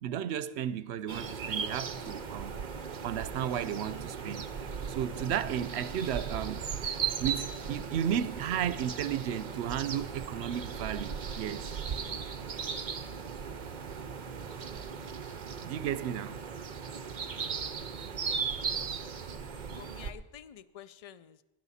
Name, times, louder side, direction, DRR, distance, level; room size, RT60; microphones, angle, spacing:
voice 1, 0.0-2.5 3.0-4.5 4.9-11.7 15.6-16.4, right 9 dB, 80° right, 0.9 m, -34 dB
sound 1, 1.1-20.1, right 6 dB, 50° right, 0.8 m, -37 dB
voice 2, 18.0-18.5 19.7-21.4, left 10 dB, 50° left, 0.4 m, -50 dB
19.5 x 10.5 x 4.1 m
omnidirectional pair, 1.1 m